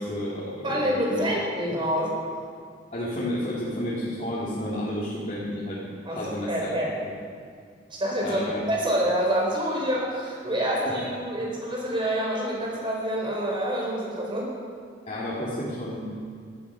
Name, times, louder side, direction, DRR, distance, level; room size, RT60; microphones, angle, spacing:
voice 1, 0.0-1.3 2.9-5.8 6.1-6.9 8.2-8.6 10.8-11.2 15.1-16.0, left 1 dB, 40° left, -8 dB, 2.9 m, -31 dB
voice 2, 0.6-2.2 6.1-6.9 7.9-14.5, equal, 25° right, -3 dB, 4.9 m, -27 dB
17.0 x 13.0 x 5.7 m, 2.1 s
head